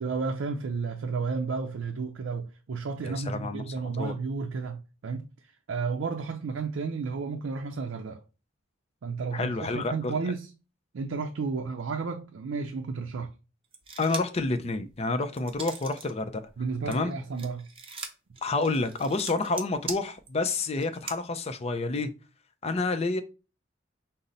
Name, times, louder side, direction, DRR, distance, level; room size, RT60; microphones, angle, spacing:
voice 1, 0.0-5.3 5.7-8.2 9.0-10.5 10.9-13.3 16.6-17.7, right 4 dB, 85° right, 0.4 m, -32 dB
voice 2, 3.0-4.1 9.3-10.1 14.0-16.4 16.9-17.1 18.4-22.1 22.6-23.2, left 3 dB, 35° left, 0.5 m, -29 dB
sound 1, 13.7-14.4 14.9-16.1 16.4-21.2, right 4 dB, 30° right, 0.6 m, -41 dB
5.4 x 2.0 x 3.9 m
head